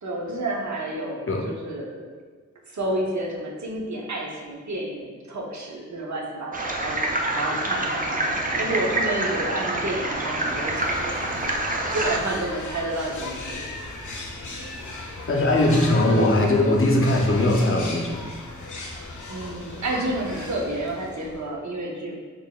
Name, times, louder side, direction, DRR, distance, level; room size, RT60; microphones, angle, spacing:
voice 1, 0.0-2.1 2.7-13.7 19.3-22.1, right 1 dB, 70° right, -1 dB, 0.7 m, -30 dB
sound 1, 6.5-12.2, right 1 dB, 30° right, 0.4 m, -27 dB
sound 2, 9.9-21.5, left 2 dB, 85° left, 0.6 m, -37 dB
voice 2, 15.3-18.3, left 1 dB, 45° left, 0 dB, 0.5 m, -20 dB
3.7 x 3.5 x 2.2 m, 1.5 s
wide cardioid pair, 75°, 30 cm